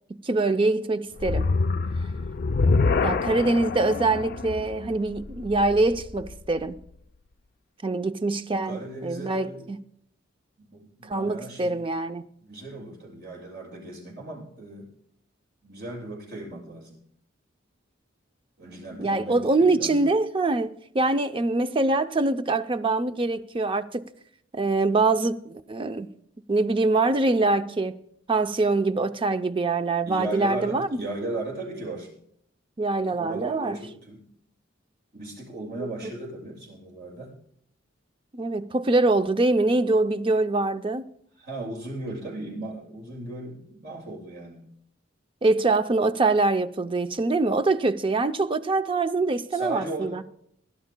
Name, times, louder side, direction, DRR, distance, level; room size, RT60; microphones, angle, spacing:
voice 1, 0.1-1.5 3.0-6.8 7.8-9.8 11.0-12.2 19.0-24.0 24.5-26.1 26.5-27.9 28.3-31.0 32.8-33.8 35.8-35.9 38.3-41.0 45.4-50.2, right 2 dB, 25° right, 0.5 m, -24 dB
sound 1, 1.2-6.5, left 3 dB, 50° left, 0.4 m, -26 dB
voice 2, 8.6-9.7 10.6-11.8 12.4-14.9 15.6-17.0 18.6-20.0 30.0-32.1 33.1-34.2 35.1-37.4 41.4-44.7 49.5-50.2, right 2 dB, 60° right, 6.7 m, -36 dB
23.5 x 12.0 x 2.2 m
head